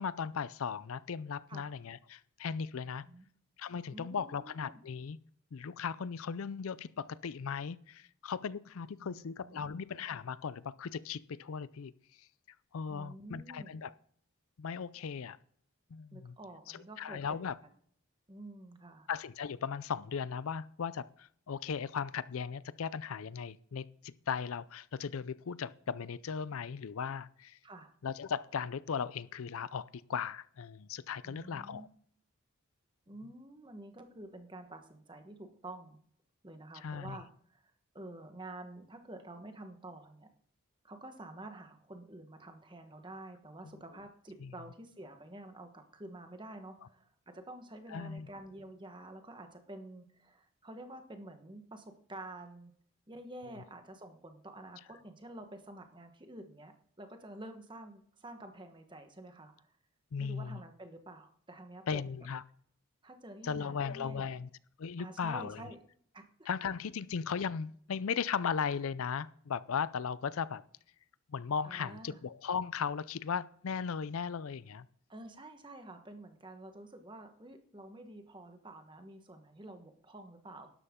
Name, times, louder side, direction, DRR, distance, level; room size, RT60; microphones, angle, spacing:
voice 1, 0.0-3.1 3.6-5.2 5.5-12.3 12.7-13.9 14.6-15.4 15.9-16.3 16.7-17.6 19.1-27.6 28.0-31.9 36.7-37.2 44.4-44.5 47.9-48.3 60.1-60.6 61.9-62.4 63.4-64.5 64.8-65.6 66.5-70.6 71.3-74.9, left 6 dB, 70° left, 0.4 m, -37 dB
voice 2, 3.9-4.8 9.0-9.8 12.9-13.8 16.1-17.4 18.3-19.1 27.6-27.9 31.2-31.9 33.1-36.0 36.4-40.3 40.8-52.7 53.1-59.7 60.2-62.0 63.0-64.4 65.0-65.8 66.1-66.3 71.6-72.2 75.1-80.7, right 1 dB, 20° right, 1.2 m, -49 dB
12.0 x 11.0 x 3.7 m
head